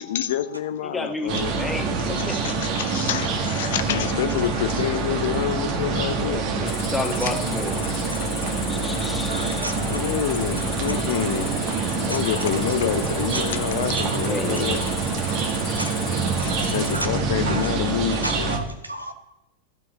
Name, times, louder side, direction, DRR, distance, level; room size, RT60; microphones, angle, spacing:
voice 1, 0.0-1.6 2.2-6.4 7.8-7.9 9.9-11.5 12.1-14.8 16.4-18.5, left 11 dB, 55° left, 12 dB, 0.6 m, -27 dB
voice 2, 0.9-2.4 6.2-7.8 8.7-9.7 14.3-14.8 18.0-18.1, left 2 dB, 10° left, 4 dB, 1.3 m, -31 dB
sound 1, 1.3-18.6, right 4 dB, 40° right, 1.3 m, -26 dB
Cricket, 6.7-17.0, left 9 dB, 30° left, 0.8 m, -36 dB
voice 3, 9.3-10.0 15.8-15.9 16.5-16.7 16.9-17.1 17.5-17.6 18.1-19.1, right 2 dB, 85° right, 7 dB, 1.0 m, -32 dB
14.0 x 4.7 x 6.2 m, 0.92 s
figure-of-eight pair, 90°, 0 cm